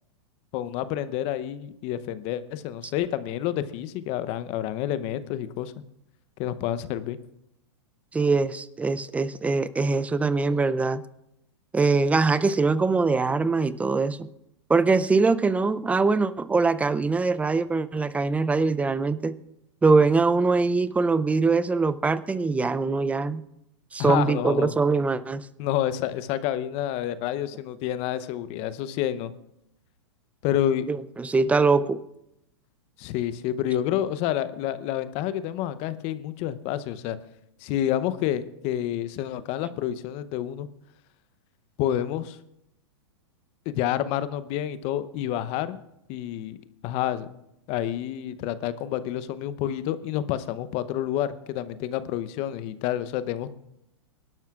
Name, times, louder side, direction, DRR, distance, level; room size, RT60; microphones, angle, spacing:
voice 1, 0.5-5.7 6.4-7.2 24.0-24.7 25.6-29.3 30.4-30.9 33.0-37.2 37.6-40.7 41.8-42.4 43.7-45.8 46.1-46.6 46.8-47.3 47.7-53.5, left 11 dB, 45° left, 14 dB, 0.8 m, -29 dB
voice 2, 8.1-11.0 11.7-14.3 14.7-19.4 19.8-23.4 23.9-25.5 30.9-32.0, right 4 dB, 10° right, 15 dB, 0.5 m, -23 dB
23.5 x 12.0 x 2.4 m, 0.82 s
hypercardioid pair, 120°, 15 cm